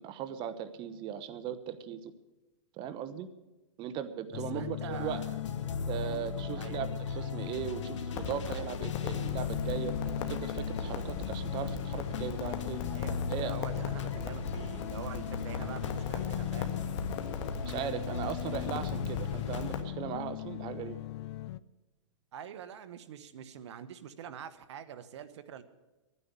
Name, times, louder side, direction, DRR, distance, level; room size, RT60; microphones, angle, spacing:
voice 1, 0.0-2.1 2.8-3.3 3.8-5.2 5.9-9.9 10.3-12.8 13.3-13.6 17.7-21.0, right 9 dB, 30° right, 12 dB, 1.0 m, -38 dB
sound 1, 4.3-21.6, left 15 dB, 60° left, 0.5 m, -39 dB
voice 2, 4.3-5.4 6.6-6.9 12.9-16.8 22.3-25.6, right 8 dB, 65° right, 12 dB, 1.2 m, -45 dB
sound 2, 4.9-19.8, left 3 dB, 75° left, 1.4 m, -39 dB
Crackle, 8.1-19.8, left 5 dB, 35° left, 1.5 m, -40 dB
11.5 x 9.9 x 9.6 m, 1.1 s
hypercardioid pair, 135°, 16 cm